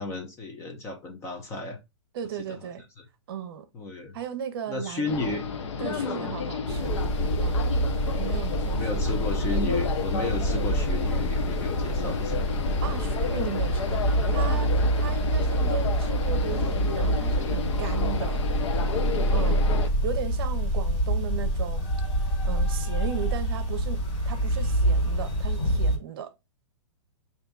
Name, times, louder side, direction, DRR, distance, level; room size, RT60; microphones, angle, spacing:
voice 1, 0.0-1.8 2.5-2.6 3.0-3.1 3.7-4.2 4.7-5.4 5.8-6.4 8.7-12.6 19.4-19.7, left 3 dB, 15° left, 0.6 m, -33 dB
voice 2, 2.1-2.8 3.3-3.7 4.1-5.1 5.8-6.9 7.4-7.6 8.2-9.2 12.8-18.4 19.3-19.6 20.0-21.9 22.2-26.3, right 8 dB, 50° right, 0.8 m, -36 dB
sound 1, 5.0-19.9, left 6 dB, 70° left, 0.8 m, -32 dB
sound 2, 6.7-26.0, right 1 dB, 40° left, 1.9 m, -26 dB
6.6 x 2.7 x 2.3 m
hypercardioid pair, 155°, 16 cm